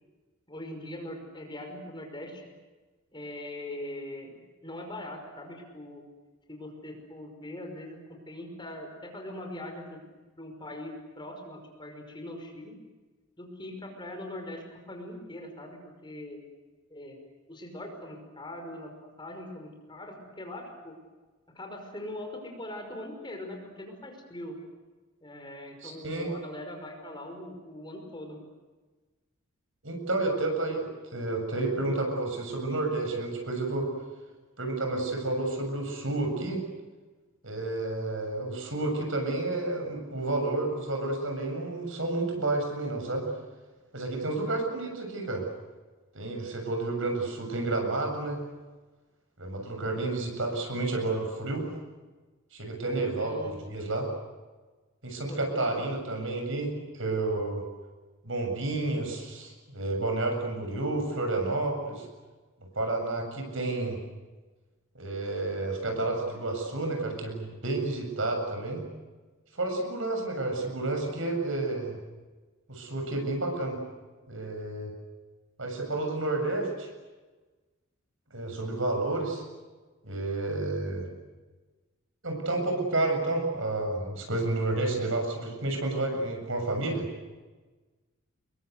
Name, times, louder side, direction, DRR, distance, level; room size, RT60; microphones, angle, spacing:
voice 1, 0.5-2.4 3.1-6.0 6.5-10.0 10.4-12.7 13.4-16.4 16.9-17.2 17.5-18.9 19.2-21.0 21.5-24.6 25.2-28.4 52.9-53.5 55.3-55.7, left 1 dB, 20° left, 3 dB, 5.6 m, -41 dB
voice 2, 25.8-26.3 29.8-33.9 34.6-36.6 37.4-43.3 43.9-45.4 46.1-48.4 49.4-51.7 52.5-54.1 55.0-57.6 58.2-62.1 62.7-64.0 64.9-68.8 69.5-71.9 72.7-73.8 74.3-74.9 75.6-76.9 78.3-79.4 80.0-81.1 82.2-87.1, right 2 dB, 70° right, 3 dB, 7.6 m, -30 dB
28.0 x 22.5 x 8.3 m, 1.3 s
head